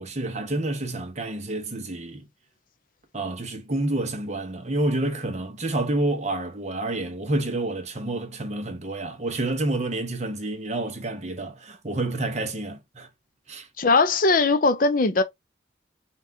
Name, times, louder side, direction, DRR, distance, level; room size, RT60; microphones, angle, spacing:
voice 1, 0.0-2.3 3.1-13.1 13.5-13.7, right 2 dB, 35° right, 0.9 m, -29 dB
voice 2, 13.8-15.2, left 3 dB, 45° left, 0.5 m, -20 dB
5.6 x 2.4 x 2.7 m
head